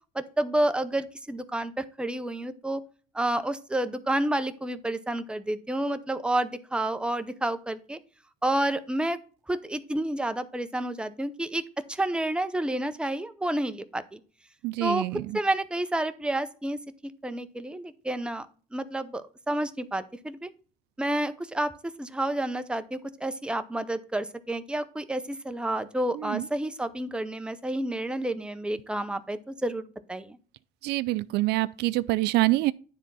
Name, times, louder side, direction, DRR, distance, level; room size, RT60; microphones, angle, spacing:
voice 1, 0.1-2.8 3.1-8.0 8.4-9.2 9.5-11.6 11.9-14.2 14.8-15.0 15.3-16.8 17.2-18.5 18.7-20.5 21.0-30.4, right 1 dB, 5° right, 0.7 m, -30 dB
voice 2, 14.6-15.4 26.1-26.5 30.8-32.7, right 19 dB, 80° right, 0.4 m, -26 dB
9.9 x 3.6 x 5.5 m
cardioid pair, 110°, 17 cm